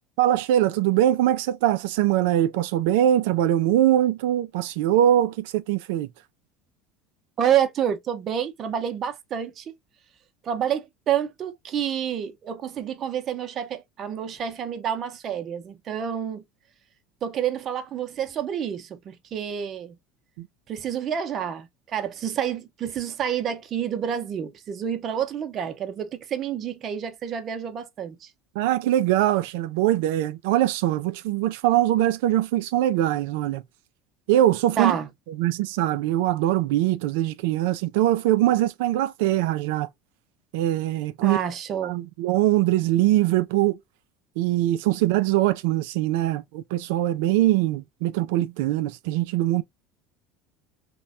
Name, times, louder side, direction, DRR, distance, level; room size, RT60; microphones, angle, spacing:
voice 1, 0.2-6.1 20.4-20.5 28.6-33.6 34.3-35.0 35.4-39.9 40.5-41.4 41.8-43.8 44.4-49.6, right 13 dB, 80° right, 0.3 m, -22 dB
voice 2, 7.4-9.7 10.4-16.4 17.2-20.0 20.7-28.3 34.8-35.1 41.2-42.0, right 9 dB, 45° right, 0.6 m, -28 dB
3.1 x 2.2 x 2.4 m
supercardioid pair, 95°, 0 cm